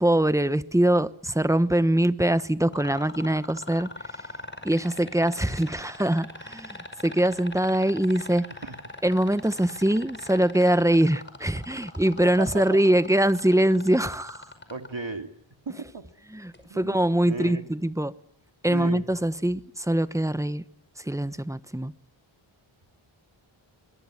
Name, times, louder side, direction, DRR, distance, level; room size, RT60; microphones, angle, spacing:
voice 1, 0.0-3.9 4.6-8.5 9.0-14.5 16.3-18.1 18.6-20.6 21.0-21.9, right 1 dB, 5° right, 1.0 m, -23 dB
sound 1, 2.7-14.9 16.5-16.6, left 2 dB, 20° left, 5.5 m, -40 dB
voice 2, 12.2-12.8 14.7-15.3 15.7-16.0 16.7-17.6 18.7-19.0, right 3 dB, 65° right, 2.6 m, -35 dB
22.5 x 22.5 x 9.8 m
wide cardioid pair, 45°, 50 cm